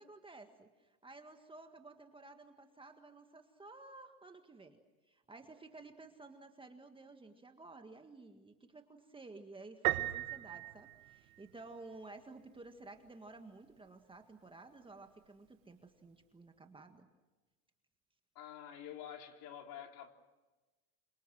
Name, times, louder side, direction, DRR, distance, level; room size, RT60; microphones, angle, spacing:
voice 1, 0.0-4.8 5.1-17.1, right 3 dB, 10° right, 5 dB, 1.8 m, -54 dB
Piano, 9.8-11.7, right 18 dB, 65° right, 1.7 m, -36 dB
voice 2, 18.4-20.1, left 9 dB, 45° left, 4 dB, 3.7 m, -48 dB
28.5 x 25.5 x 6.3 m, 1.2 s
supercardioid pair, 125°, 45 cm